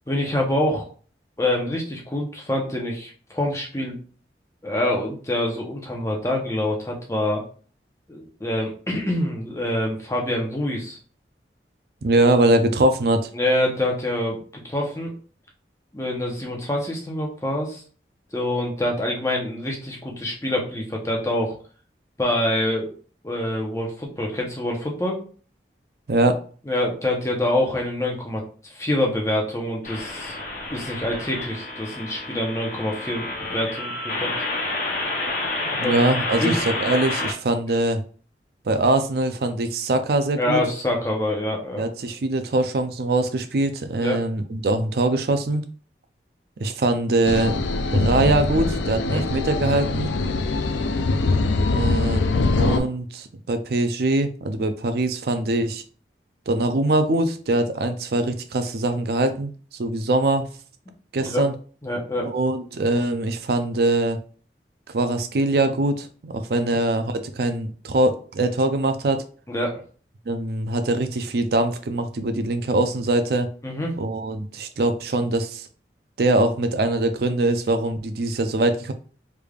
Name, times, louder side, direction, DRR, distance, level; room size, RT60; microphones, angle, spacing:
voice 1, 0.1-0.9 1.4-4.0 4.6-7.4 8.1-11.0 13.3-15.1 15.9-17.8 18.3-21.6 22.2-22.9 23.2-25.2 26.7-30.4 30.7-34.3 35.8-36.0 36.4-36.6 40.4-41.8 44.0-44.2 49.0-49.2 61.2-61.4 61.8-62.3 66.5-66.7 69.5-69.7 73.6-73.9, left 1 dB, 15° left, -1 dB, 0.8 m, -26 dB
voice 2, 12.0-13.3 26.1-26.4 35.6-38.0 38.7-40.6 41.8-45.6 46.6-47.6 47.9-50.1 51.7-55.8 56.5-59.5 59.8-60.5 61.1-61.5 62.2-64.2 64.9-69.2 70.3-73.5 73.9-75.7 76.2-78.9, right 2 dB, 60° right, 8 dB, 0.4 m, -22 dB
sound 1, 29.8-37.3, left 2 dB, 50° left, 0.8 m, -29 dB
sound 2, 47.2-52.8, left 3 dB, 90° left, 0.4 m, -23 dB
3.4 x 3.3 x 2.3 m, 0.41 s
head